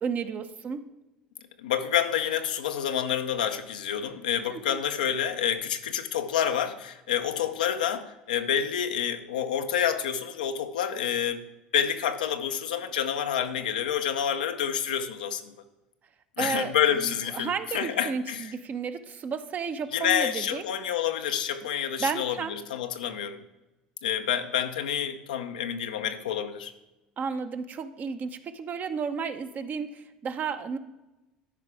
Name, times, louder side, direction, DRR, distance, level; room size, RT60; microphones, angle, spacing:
voice 1, 0.0-0.8 4.5-4.8 16.4-20.6 22.0-22.6 27.2-30.8, right 6 dB, 40° right, 9 dB, 0.8 m, -33 dB
voice 2, 1.6-11.5 11.7-15.5 16.4-18.5 19.9-23.4 24.0-26.7, left 9 dB, 85° left, 7 dB, 0.7 m, -28 dB
12.5 x 4.9 x 4.8 m, 1.0 s
hypercardioid pair, 75°, 4 cm